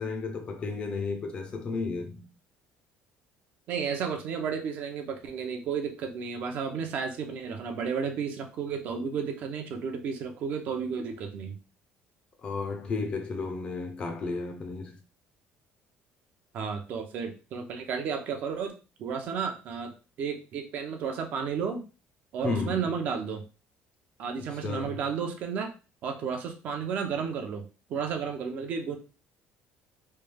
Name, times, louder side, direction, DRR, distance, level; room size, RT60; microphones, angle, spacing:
voice 1, 0.0-2.3 12.4-15.0 22.4-22.8 24.5-25.0, left 4 dB, 30° left, 0.5 m, -33 dB
voice 2, 3.7-11.6 16.5-18.7 19.0-21.8 22.3-23.4 24.2-25.7 26.0-29.0, right 6 dB, 50° right, 0.6 m, -32 dB
3.2 x 2.3 x 3.3 m
cardioid pair, 175°, 4 cm